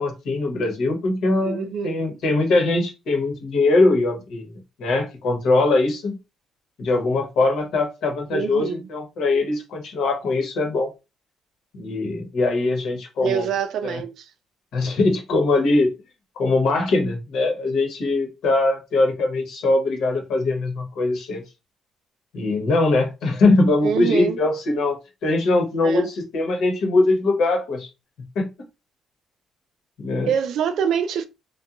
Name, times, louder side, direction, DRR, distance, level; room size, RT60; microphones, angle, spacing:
voice 1, 0.0-4.5 4.8-6.2 6.8-10.9 11.7-13.4 13.9-14.0 14.7-15.9 16.4-21.4 22.3-27.9 28.3-28.5 30.0-30.3, left 2 dB, 75° left, 1.0 m, -21 dB
voice 2, 1.4-2.1 8.3-8.9 13.2-14.3 23.8-24.4 25.8-26.1 30.3-31.2, right 7 dB, 75° right, 0.4 m, -25 dB
2.8 x 2.2 x 2.4 m
cardioid pair, 120°, 0 cm